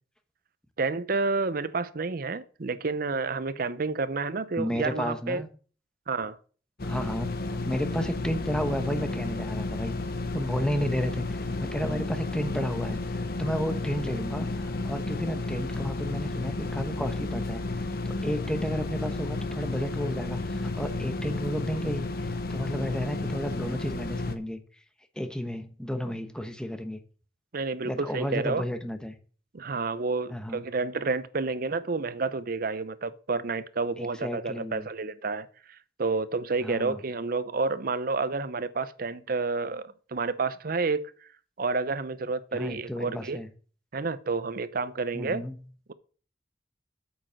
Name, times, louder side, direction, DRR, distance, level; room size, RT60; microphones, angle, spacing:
voice 1, 0.8-5.4 6.1-6.4 27.5-28.6 29.5-35.5 36.0-41.1 41.6-43.4 43.9-45.4, right 4 dB, 55° right, 0.7 m, -30 dB
voice 2, 4.6-5.5 6.8-10.0 10.3-24.6 25.2-27.0 27.8-29.1 30.3-30.6 34.0-34.9 36.6-37.0 42.5-43.5 45.1-45.5, equal, 5° left, 1.1 m, -32 dB
sound 1, 6.8-24.4, left 2 dB, 60° left, 1.0 m, -32 dB
8.8 x 6.3 x 6.4 m
head